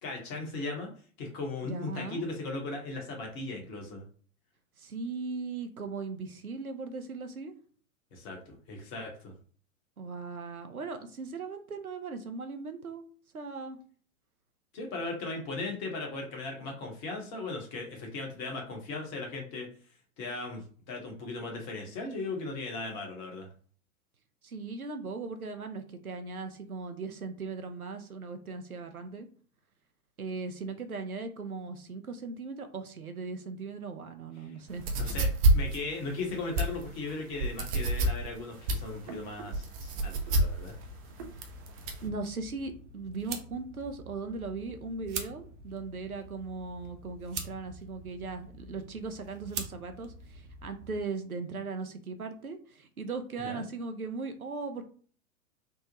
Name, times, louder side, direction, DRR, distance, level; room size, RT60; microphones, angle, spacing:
voice 1, 0.0-0.9 1.2-4.0 8.1-9.3 14.7-19.7 20.2-23.5 34.4-34.5 35.0-40.7 53.4-53.6, left 3 dB, 35° left, 1 dB, 1.1 m, -37 dB
voice 2, 1.6-2.3 4.8-7.5 10.0-13.1 13.3-13.8 24.4-29.3 30.2-34.8 41.4-41.5 42.0-54.8, right 4 dB, 90° right, 8 dB, 0.6 m, -38 dB
sound 1, 34.7-42.1, right 1 dB, 25° right, 0.4 m, -28 dB
Lighter Flick, 40.6-51.0, right 4 dB, 55° right, 0.8 m, -45 dB
3.5 x 2.1 x 2.9 m, 0.44 s
figure-of-eight pair, 100°, 42 cm